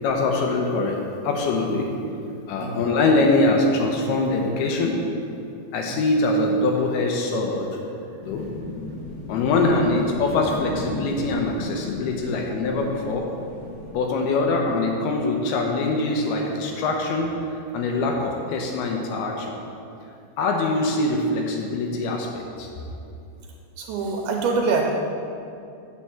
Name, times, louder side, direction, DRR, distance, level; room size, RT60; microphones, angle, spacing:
voice 1, 0.0-1.0 1.2-1.9 2.5-5.0 5.7-7.7 8.3-8.4 9.3-13.3 13.9-17.3 17.7-19.5 20.4-22.7, left 2 dB, 80° left, 1 dB, 2.6 m, -23 dB
voice 2, 2.6-2.9 5.9-6.0 9.7-9.9 14.6-14.7 23.8-24.8, right 4 dB, 85° right, 1 dB, 2.5 m, -26 dB
sound 1, 8.2-13.9, left 2 dB, 60° left, 2.6 m, -36 dB
9.1 x 4.5 x 7.2 m, 2.6 s
omnidirectional pair, 4.7 m